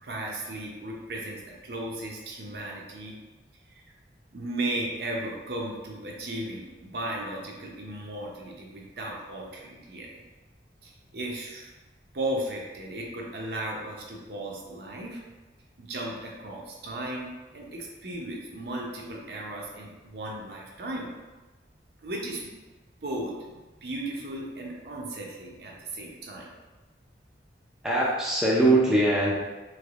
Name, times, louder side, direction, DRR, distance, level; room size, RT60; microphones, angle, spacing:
voice 1, 0.0-3.2 3.7-3.8 4.3-10.2 10.8-11.7 12.1-15.2 15.8-21.1 22.0-22.5 23.0-23.5 23.8-26.5, right 1 dB, 60° right, -2 dB, 0.6 m, -35 dB
voice 2, 27.8-29.3, right 1 dB, 5° right, -6 dB, 0.4 m, -21 dB
3.3 x 3.0 x 2.4 m, 1.2 s
head